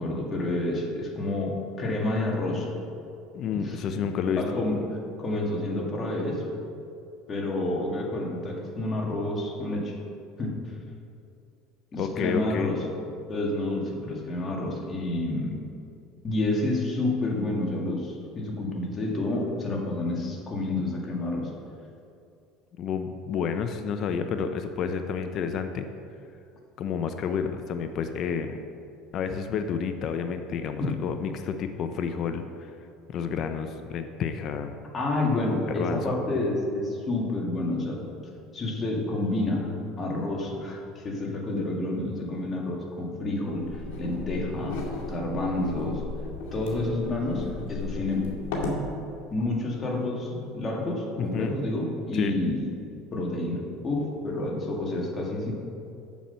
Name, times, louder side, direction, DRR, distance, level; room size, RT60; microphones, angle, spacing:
voice 1, 0.0-2.7 3.5-4.0 4.4-6.4 7.3-10.0 10.4-10.6 11.9-12.8 13.3-15.6 16.2-21.5 30.8-30.9 34.9-38.0 38.5-46.0 46.5-48.4 49.3-52.7 53.1-55.5, left 2 dB, 30° left, -1 dB, 2.0 m, -29 dB
voice 2, 3.3-4.4 12.0-12.7 22.8-25.9 26.8-28.6 29.1-32.7 33.1-34.7 35.8-36.1 36.5-36.6 51.3-51.5 52.1-52.3, left 6 dB, 50° left, 7 dB, 0.6 m, -30 dB
sound 1, 43.5-48.9, left 2 dB, 80° left, 2.1 m, -35 dB
7.5 x 7.2 x 5.6 m, 2.5 s
supercardioid pair, 110°, 0 cm